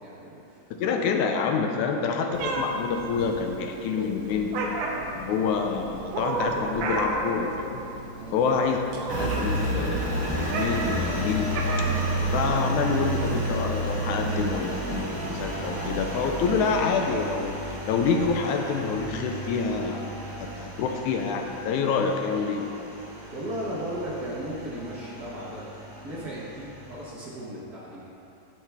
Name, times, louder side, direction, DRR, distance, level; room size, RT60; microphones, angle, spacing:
voice 1, 0.0-1.0 8.1-8.4 23.3-25.7 26.0-28.3, right 1 dB, 85° right, -8 dB, 0.8 m, -36 dB
voice 2, 0.7-4.6 5.1-7.8 8.3-8.8 9.1-10.1 10.4-11.5 12.3-20.1 20.4-22.7, left 5 dB, 80° left, 3 dB, 1.9 m, -27 dB
Meow, 2.3-13.9, right 2 dB, 70° right, 2.2 m, -34 dB
Engine, 9.1-27.0, right 1 dB, 40° right, 2.7 m, -31 dB
10.0 x 8.3 x 3.4 m, 2.9 s
omnidirectional pair, 3.7 m